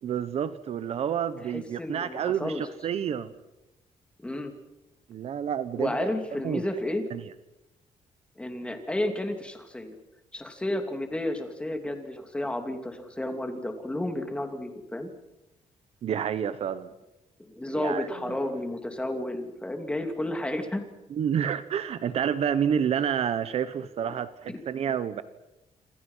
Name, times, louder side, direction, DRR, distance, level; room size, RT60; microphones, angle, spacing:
voice 1, 0.0-3.3 5.1-6.1 6.4-6.6 7.1-7.2 16.0-16.9 17.7-18.4 21.1-25.2, right 8 dB, 55° right, 13 dB, 1.1 m, -29 dB
voice 2, 1.4-2.6 4.2-4.5 5.8-7.1 8.4-10.0 10.3-15.1 17.4-20.8 24.1-24.2 24.5-24.6, left 1 dB, 10° left, 5 dB, 2.8 m, -32 dB
27.5 x 27.0 x 5.7 m, 0.93 s
cardioid pair, 165°, 13 cm